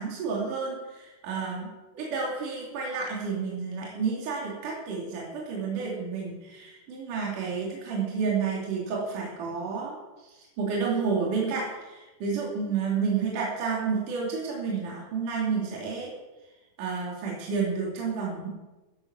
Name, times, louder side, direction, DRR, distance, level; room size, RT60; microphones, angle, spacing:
voice 1, 0.0-16.1 16.8-18.5, right 5 dB, 55° right, -3 dB, 4.2 m, -30 dB
14.0 x 10.5 x 7.1 m, 1.1 s
omnidirectional pair, 4.5 m